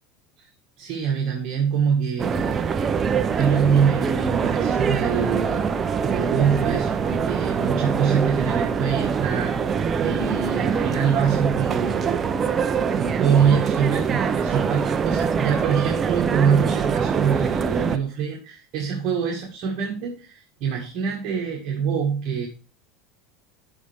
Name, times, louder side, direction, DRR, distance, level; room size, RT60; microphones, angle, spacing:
voice 1, 0.8-2.6 3.1-12.3 12.9-22.5, right 7 dB, 40° right, -1 dB, 1.9 m, -24 dB
sound 1, 2.2-18.0, right 6 dB, 20° right, 0.6 m, -24 dB
13.5 x 5.4 x 3.5 m, 0.35 s
supercardioid pair, 170°, 0 cm